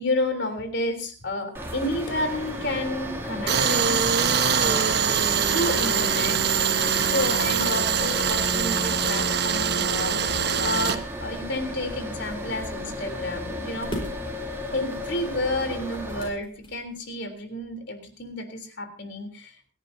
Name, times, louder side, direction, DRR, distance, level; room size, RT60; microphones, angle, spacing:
voice 1, 0.0-4.3 4.6-5.0 5.5-6.4 7.0-14.0 14.7-19.7, left 1 dB, 55° left, 6 dB, 3.5 m, -31 dB
sound 1, 1.5-16.3, left 1 dB, 10° right, 2.7 m, -34 dB
Tools, 3.5-11.0, right 7 dB, 50° right, 1.3 m, -23 dB
sound 2, 5.3-17.4, equal, 25° left, 4.8 m, -44 dB
28.0 x 11.5 x 2.8 m, 0.35 s
head